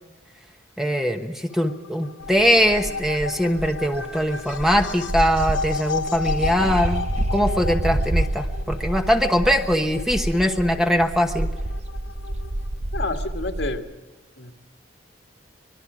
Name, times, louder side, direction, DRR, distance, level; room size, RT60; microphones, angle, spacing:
voice 1, 0.8-7.0 7.3-11.5, equal, ahead, 4 dB, 1.1 m, -21 dB
sound 1, 1.5-12.8, left 5 dB, 85° left, 1.1 m, -34 dB
sound 2, 2.2-13.8, right 1 dB, 35° right, 0.7 m, -29 dB
voice 2, 12.9-13.9 14.4-14.5, left 2 dB, 65° left, 5 dB, 1.8 m, -29 dB
25.0 x 21.5 x 5.0 m, 1.2 s
head